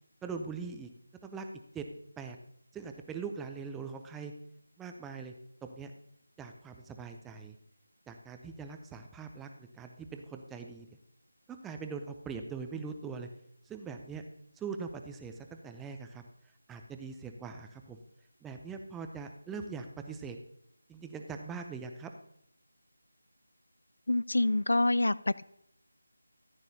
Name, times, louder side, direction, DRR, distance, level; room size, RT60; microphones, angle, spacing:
voice 1, 0.2-0.9 1.2-1.5 1.7-1.9 2.2-2.4 2.7-4.3 4.8-5.3 5.6-5.9 6.4-7.6 8.1-10.9 11.5-13.3 13.7-14.2 14.6-16.2 16.7-18.0 18.4-20.4 20.9-22.1, right 5 dB, 5° right, 5 dB, 0.5 m, -42 dB
voice 2, 24.1-25.4, left 2 dB, 70° left, 18 dB, 0.3 m, -27 dB
14.5 x 8.9 x 2.7 m, 0.73 s
figure-of-eight pair, 165°, 0 cm